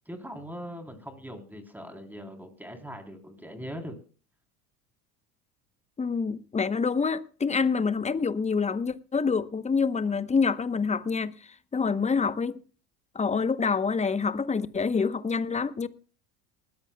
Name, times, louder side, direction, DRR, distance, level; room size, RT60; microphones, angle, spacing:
voice 1, 0.1-4.0, equal, 5° right, 3.5 m, -41 dB
voice 2, 6.0-11.3 11.7-12.6 13.1-15.9, left 5 dB, 15° left, 0.9 m, -26 dB
20.5 x 14.0 x 2.2 m
hypercardioid pair, 85°, 43 cm